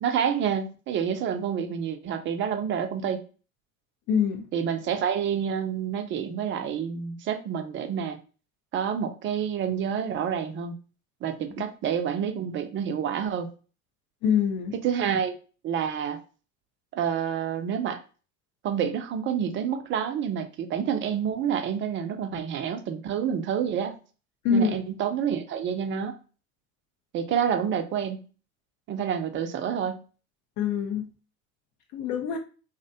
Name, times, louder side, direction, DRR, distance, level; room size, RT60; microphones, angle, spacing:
voice 1, 0.0-3.2 4.5-8.2 8.7-10.7 11.2-13.5 14.7-15.3 15.6-16.2 16.9-18.0 18.6-24.0 24.5-26.2 27.1-28.2 28.9-30.0, right 8 dB, 30° right, 7 dB, 0.4 m, -28 dB
voice 2, 4.1-4.4 14.2-14.7 24.4-24.8 30.6-31.1 31.9-32.4, left 6 dB, 45° left, 3 dB, 0.5 m, -24 dB
2.6 x 2.1 x 2.6 m, 0.36 s
hypercardioid pair, 70°, 43 cm